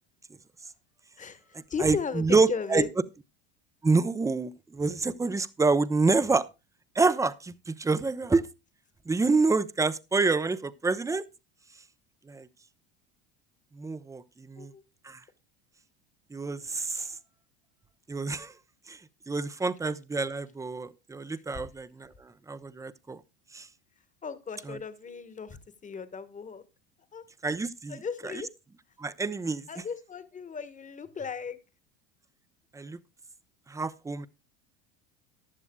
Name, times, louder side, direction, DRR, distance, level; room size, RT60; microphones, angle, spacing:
voice 1, 1.2-2.9 8.0-8.1 14.6-14.8 16.9-17.1 21.3-21.7 24.2-26.6 27.1-27.2 27.9-28.5 29.7-31.6, left 6 dB, 25° left, 1.3 m, -36 dB
voice 2, 1.8-2.8 3.8-6.5 7.0-8.5 9.1-11.3 12.3-12.5 13.7-14.7 15.0-15.2 16.3-17.1 18.1-18.5 18.9-19.0 19.3-23.2 23.5-23.7 24.7-24.8 27.4-28.3 29.0-29.7 32.7-33.0 33.7-34.3, right 3 dB, 10° right, 0.6 m, -27 dB
15.0 x 11.0 x 2.2 m
supercardioid pair, 100°, 33 cm